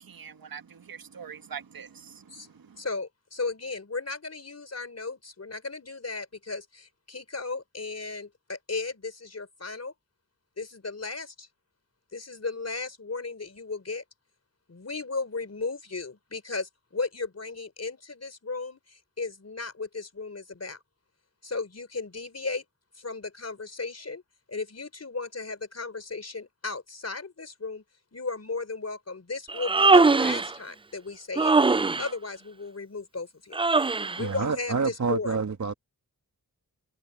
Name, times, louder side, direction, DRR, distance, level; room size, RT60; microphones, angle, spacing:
voice 1, 0.0-2.8, right 7 dB, 80° right, 1.7 m, -44 dB
voice 2, 2.8-9.9 10.6-11.5 12.1-14.0 14.7-20.8 21.4-22.6 22.9-24.2 24.5-27.8 28.1-31.5 32.0-33.6 34.2-35.4, left 3 dB, 45° left, 4.2 m, -35 dB
Human voice, 29.5-30.5 31.4-32.1 33.5-34.2, right 3 dB, 15° right, 0.4 m, -21 dB
voice 3, 34.2-35.7, right 5 dB, 55° right, 1.8 m, -28 dB
cardioid pair, 50°, 35 cm